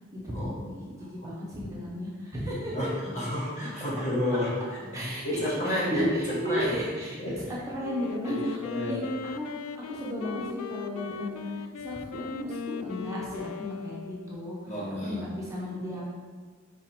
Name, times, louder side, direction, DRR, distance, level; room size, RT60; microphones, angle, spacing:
voice 1, 0.2-2.7 4.9-7.2 7.5-8.6 8.9-9.0 9.3-9.5 9.7-14.7 15.0-16.0, equal, 15° right, -6 dB, 1.0 m, -34 dB
voice 2, 2.5-4.6 4.9-6.1 6.4-6.8 7.2-7.4 8.2-9.0 14.7-15.2, left 1 dB, 35° left, -6 dB, 1.8 m, -31 dB
Wind instrument woodwind instrument, 7.8-14.6, left 6 dB, 85° left, 0.3 m, -39 dB
5.3 x 5.0 x 3.7 m, 1.5 s
head